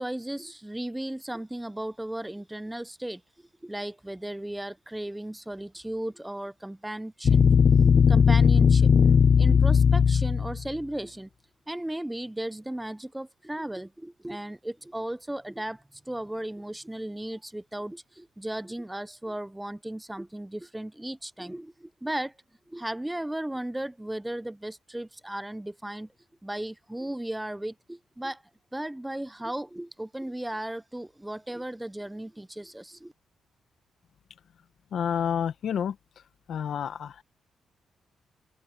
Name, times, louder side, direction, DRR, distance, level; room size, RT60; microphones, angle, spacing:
voice 1, 0.0-3.2 3.6-7.4 7.8-8.9 9.4-11.3 11.7-22.3 22.7-26.1 26.4-28.4 28.7-33.1, right 1 dB, 10° right, 1.0 m, -35 dB
sound 1, 7.2-10.7, left 6 dB, 55° left, 0.4 m, -18 dB
voice 2, 34.9-36.0 36.5-37.2, left 8 dB, 70° left, 1.3 m, -29 dB
open air
cardioid pair, 65°, 0 cm